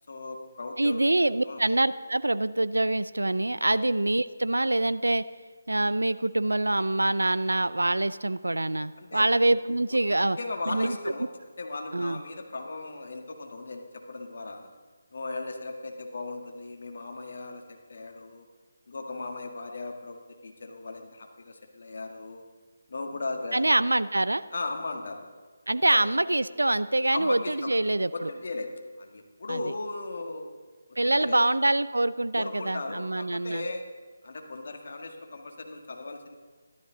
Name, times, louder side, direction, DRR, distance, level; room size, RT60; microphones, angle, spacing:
voice 1, 0.1-1.0 1.4-1.6 3.7-3.8 9.0-9.3 9.9-10.0 10.4-11.3 11.6-14.7 15.1-18.5 18.9-22.4 22.9-23.7 24.5-25.2 25.9-26.0 27.1-27.7 28.1-28.7 29.0-30.5 30.9-31.4 32.3-33.9 34.2-36.3, left 3 dB, 60° left, 3 dB, 1.8 m, -37 dB
voice 2, 0.8-5.2 5.7-10.4 10.7-10.9 11.9-12.2 23.5-24.4 25.7-28.3 29.5-29.6 31.0-33.6, right 2 dB, 90° right, 15 dB, 0.4 m, -25 dB
13.5 x 12.5 x 3.9 m, 1.4 s
figure-of-eight pair, 155°, 0 cm